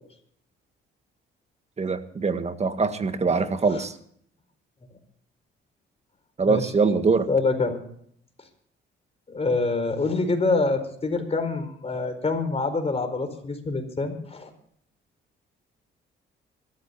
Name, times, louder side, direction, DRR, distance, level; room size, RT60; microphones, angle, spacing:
voice 1, 1.8-3.9 6.4-7.3, right 4 dB, 35° right, 9 dB, 1.7 m, -23 dB
voice 2, 7.3-7.8 9.3-14.5, left 3 dB, 30° left, 6 dB, 4.3 m, -26 dB
26.5 x 13.5 x 2.8 m, 0.64 s
cardioid pair, 90°, 20 cm